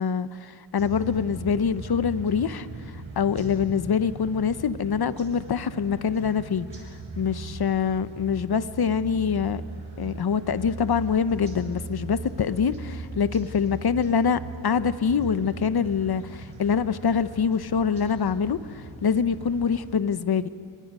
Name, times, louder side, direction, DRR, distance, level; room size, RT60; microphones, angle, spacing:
voice 1, 0.0-2.7 3.2-6.7 7.2-9.6 10.0-20.5, left 6 dB, 50° left, 0.8 m, -25 dB
sound 1, 0.8-20.0, right 3 dB, 70° right, 4.8 m, -39 dB
27.5 x 23.5 x 5.4 m
wide cardioid pair, 90°, 48 cm